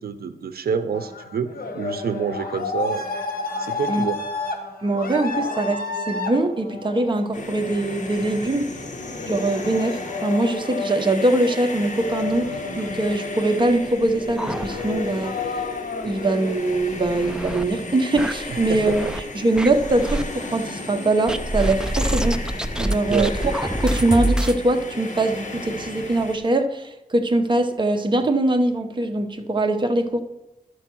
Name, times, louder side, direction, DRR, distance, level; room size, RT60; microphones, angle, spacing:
voice 1, 0.0-3.0 3.6-4.2 18.5-19.1 23.1-23.4 23.9-24.0, right 6 dB, 90° right, 11 dB, 0.6 m, -28 dB
sound 1, 0.9-16.5, left 3 dB, 75° left, 1.2 m, -32 dB
voice 2, 4.8-8.7 9.3-15.4 16.0-19.1 19.3-22.4 22.8-23.6 23.8-30.2, right 2 dB, 30° right, 5 dB, 0.8 m, -22 dB
sound 2, 7.3-26.4, left 2 dB, 55° left, 1.2 m, -35 dB
sound 3, 13.7-15.2 15.6-15.7 16.0-16.1 16.7-17.7 18.2-19.2 19.6-20.2 21.3-24.6, right 1 dB, 5° right, 0.4 m, -27 dB
11.5 x 4.6 x 6.1 m, 0.94 s
wide cardioid pair, 145°, 15 cm